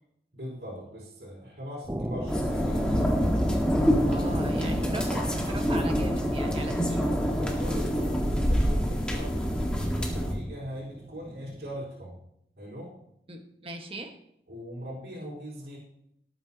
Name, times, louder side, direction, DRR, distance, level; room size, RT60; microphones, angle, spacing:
voice 1, 0.3-2.8 7.4-9.3 9.8-12.2 12.6-12.9 14.5-15.8, equal, 70° right, -8 dB, 5.2 m, -40 dB
sound 1, 1.8-11.8, right 1 dB, 15° right, 0.6 m, -38 dB
sound 2, 2.3-10.3, equal, 5° left, 1.8 m, -26 dB
voice 2, 4.1-7.1 13.3-14.1, right 1 dB, 30° right, 4 dB, 1.5 m, -39 dB
19.0 x 9.1 x 3.0 m, 0.76 s
head